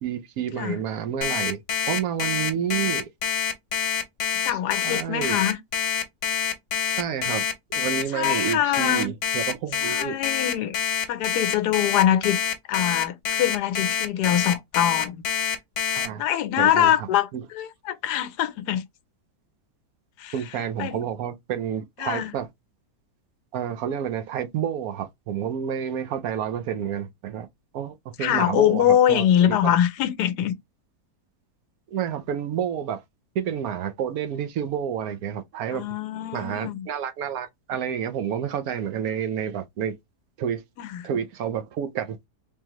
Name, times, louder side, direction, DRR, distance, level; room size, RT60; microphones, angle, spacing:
voice 1, 0.0-1.6 1.9-3.1 4.5-4.6 4.8-5.4 6.8-7.5 7.7-10.2 15.9-16.2 16.6-17.1 17.3-17.4 20.3-22.5 23.5-27.5 27.7-29.7 31.9-33.0 33.3-35.8 36.3-40.0 40.4-40.6 41.0-42.3, right 8 dB, 70° right, 1.0 m, -29 dB
Alarm, 1.2-16.1, left 8 dB, 55° left, 1.1 m, -26 dB
voice 2, 4.4-5.6 8.1-9.1 9.8-10.8 11.1-12.4 12.7-15.2 16.2-18.8 20.2-20.3 20.8-21.0 22.0-22.3 28.2-30.5 35.7-36.9 40.8-41.0, left 11 dB, 80° left, 1.2 m, -23 dB
3.6 x 3.2 x 2.9 m
omnidirectional pair, 1.7 m